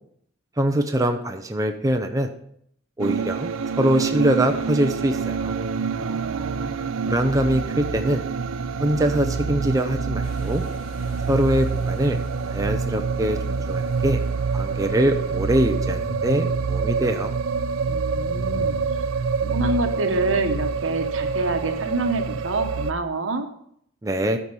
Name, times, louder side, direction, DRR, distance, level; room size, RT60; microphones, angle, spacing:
voice 1, 0.6-2.3 3.0-5.5 7.1-8.2 8.8-10.6 11.3-12.2 12.5-14.2 14.5-17.3 24.0-24.4, right 1 dB, 15° right, 5 dB, 0.6 m, -23 dB
sound 1, 3.0-22.9, right 5 dB, 85° right, 0.5 m, -26 dB
voice 2, 6.0-6.9 17.9-18.8 19.4-23.5, right 2 dB, 70° right, 6 dB, 1.2 m, -27 dB
sound 2, 10.2-15.3, equal, 40° left, 2.8 m, -46 dB
sound 3, 15.4-16.9 17.5-19.4, left 4 dB, 80° left, 0.7 m, -42 dB
14.0 x 4.6 x 5.4 m, 0.70 s
head